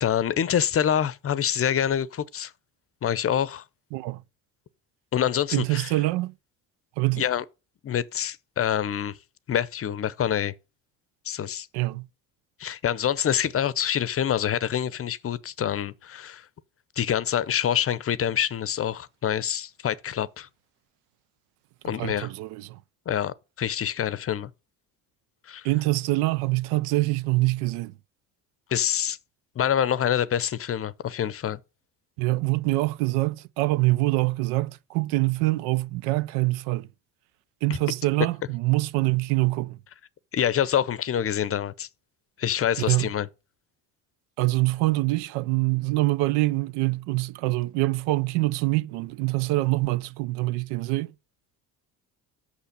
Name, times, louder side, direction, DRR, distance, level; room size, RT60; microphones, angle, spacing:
voice 1, 0.0-2.5 3.0-3.6 5.1-5.9 7.2-7.4 7.8-9.2 9.5-10.5 11.3-11.7 12.6-16.5 17.0-20.5 21.8-22.3 23.1-24.5 25.5-25.7 28.7-29.2 29.6-31.6 40.3-41.9 42.4-43.3, left 9 dB, 35° left, 0.6 m, -26 dB
voice 2, 5.5-6.3 7.0-7.2 11.7-12.1 22.0-22.8 25.6-27.9 32.2-36.9 37.6-39.8 42.9-43.1 44.4-51.1, right 20 dB, 85° right, 0.5 m, -25 dB
6.3 x 5.7 x 6.6 m
supercardioid pair, 85°, 38 cm